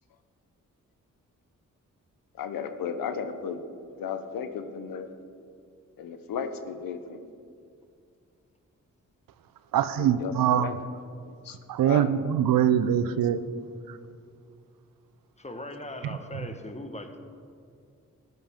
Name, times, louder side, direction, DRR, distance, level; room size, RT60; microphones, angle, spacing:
voice 1, 2.4-3.6 4.0-5.1 6.0-7.2 10.0-10.7 11.2-11.6 11.8-12.1, left 7 dB, 85° left, 9 dB, 0.7 m, -34 dB
voice 2, 9.7-10.7 11.7-13.4, right 10 dB, 80° right, 14 dB, 0.5 m, -23 dB
voice 3, 15.4-17.2, left 1 dB, 20° left, 6 dB, 1.2 m, -39 dB
13.0 x 9.4 x 3.6 m, 2.3 s
supercardioid pair, 45°, 33 cm